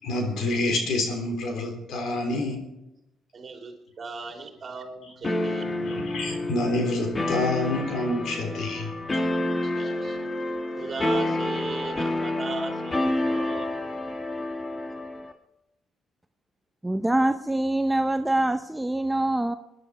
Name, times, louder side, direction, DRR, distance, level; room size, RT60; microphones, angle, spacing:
voice 1, 0.0-2.6 5.7-8.9, left 2 dB, 75° left, 4 dB, 3.7 m, -27 dB
voice 2, 3.3-5.8 9.6-10.2 10.7-13.7, right 4 dB, 45° right, 3 dB, 3.0 m, -37 dB
sound 1, 5.2-15.3, left 1 dB, 25° left, 1.6 m, -29 dB
voice 3, 16.8-19.5, right 1 dB, 10° right, 8 dB, 0.6 m, -24 dB
21.0 x 11.0 x 4.9 m, 0.90 s
cardioid pair, 90°, 0 cm